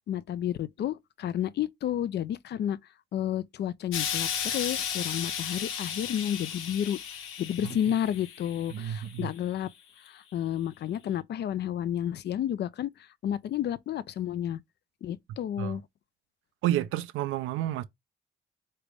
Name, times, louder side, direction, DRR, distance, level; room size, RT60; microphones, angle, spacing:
voice 1, 0.1-2.8 3.1-7.0 7.4-9.7 10.1-12.9 13.2-14.6 15.0-15.8, left 10 dB, 60° left, 0.5 m, -31 dB
Explosion, 3.9-9.2 10.1-10.2, left 8 dB, 90° left, 1.0 m, -34 dB
voice 2, 7.6-8.0 8.7-9.3 15.6-15.7 16.6-17.8, right 13 dB, 90° right, 0.6 m, -30 dB
3.9 x 3.3 x 3.4 m
cardioid pair, 90°, 20 cm